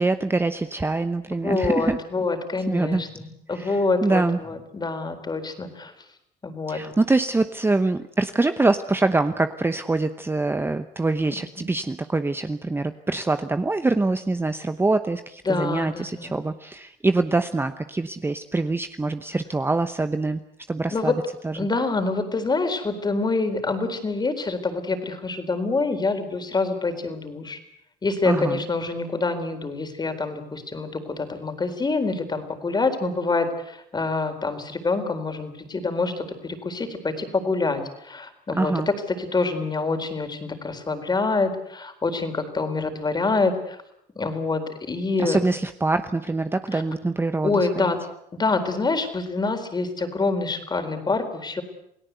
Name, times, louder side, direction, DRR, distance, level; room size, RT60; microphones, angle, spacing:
voice 1, 0.0-2.0 2.7-3.0 3.5-4.4 6.7-20.4 20.7-21.1 21.4-21.7 28.2-28.6 38.6-38.9 45.2-47.9, right 3 dB, 15° right, 9 dB, 1.0 m, -24 dB
voice 2, 1.4-5.9 6.4-6.8 15.5-16.3 20.9-21.1 21.6-27.6 28.0-38.7 39.2-43.8 44.2-45.4 46.7-46.8 47.4-48.0 48.3-51.6, left 3 dB, 25° left, 8 dB, 4.0 m, -26 dB
28.5 x 17.5 x 8.2 m, 0.77 s
cardioid pair, 110°, 17 cm